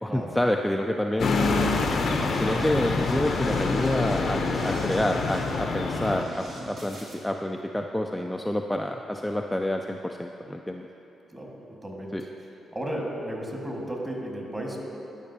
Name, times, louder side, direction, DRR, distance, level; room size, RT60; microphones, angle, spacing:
voice 1, 0.0-1.3 2.3-7.0 7.2-10.9 12.1-12.2, left 1 dB, 10° left, 2 dB, 0.3 m, -28 dB
sound 1, 1.2-6.2, left 3 dB, 65° left, 0.6 m, -26 dB
sound 2, 1.2-7.1, right 1 dB, 60° right, 1.4 m, -43 dB
voice 2, 2.5-2.8 11.3-11.5 11.8-14.8, right 1 dB, 20° right, -1 dB, 1.6 m, -35 dB
12.5 x 5.2 x 2.7 m, 3.0 s
supercardioid pair, 55°, 0 cm